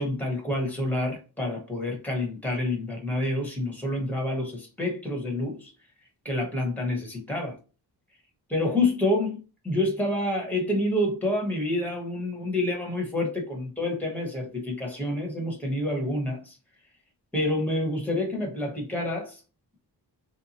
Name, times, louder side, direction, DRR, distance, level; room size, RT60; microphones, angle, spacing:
voice 1, 0.0-5.7 6.2-7.6 8.5-9.4 9.6-16.6 17.3-19.4, left 1 dB, 5° left, 1.1 m, -28 dB
3.3 x 2.8 x 2.9 m
wide cardioid pair, 130°, 41 cm